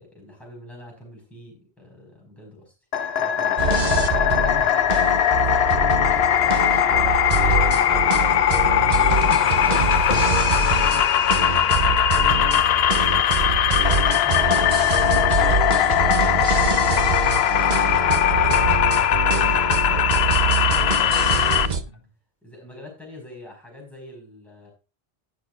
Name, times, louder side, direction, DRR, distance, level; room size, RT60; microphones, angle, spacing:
voice 1, 0.0-2.7 3.2-3.7 6.8-10.0 10.6-15.3 17.6-19.9 20.9-21.6 22.4-24.7, left 2 dB, ahead, 4.7 m, -44 dB
sound 1, 2.9-21.7, left 10 dB, 80° left, 0.9 m, -20 dB
sound 2, 3.6-21.8, right 5 dB, 45° right, 0.9 m, -25 dB
voice 2, 4.4-7.1 20.9-22.1, left 2 dB, 60° left, 1.9 m, -42 dB
sound 3, 4.6-4.7 4.9-14.1 14.4-14.9 15.2-16.0 16.3-16.4 17.4-17.7 17.9-18.0 18.4-18.5 20.1-20.2 20.9-21.0, left 1 dB, 45° left, 5.0 m, -41 dB
18.0 x 6.3 x 2.5 m
omnidirectional pair, 1.0 m